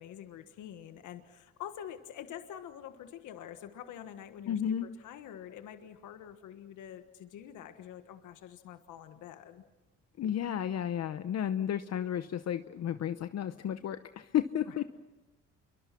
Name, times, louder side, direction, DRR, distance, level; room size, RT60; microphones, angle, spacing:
voice 1, 0.0-9.6 14.7-14.8, left 10 dB, 85° left, 8 dB, 1.5 m, -46 dB
voice 2, 4.5-4.9 10.2-14.8, left 10 dB, 60° left, 11 dB, 0.9 m, -32 dB
27.5 x 23.0 x 5.9 m, 1.0 s
cardioid pair, 90°, 30 cm